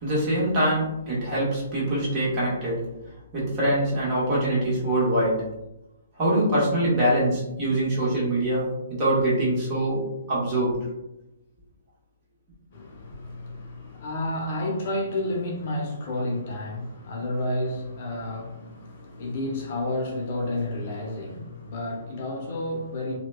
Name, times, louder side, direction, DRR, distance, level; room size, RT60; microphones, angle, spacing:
voice 1, 0.0-2.8 3.3-5.4 6.2-8.7 9.0-10.0 10.3-10.8, right 1 dB, 35° right, -7 dB, 1.3 m, -24 dB
voice 2, 12.7-23.2, left 1 dB, 50° left, -1 dB, 0.7 m, -31 dB
2.8 x 2.2 x 2.2 m, 0.93 s
hypercardioid pair, 135°, 0 cm